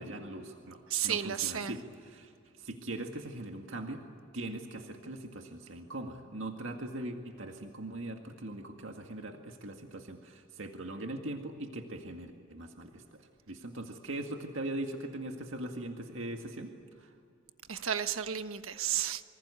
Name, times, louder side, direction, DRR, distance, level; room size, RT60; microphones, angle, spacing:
voice 1, 0.0-2.3 2.6-4.0 4.3-13.0 13.5-16.7 17.0-17.1, right 1 dB, 65° right, 2.0 m, -40 dB
voice 2, 0.9-1.8 17.7-19.2, right 9 dB, 90° right, 1.3 m, -32 dB
27.0 x 25.5 x 8.4 m
head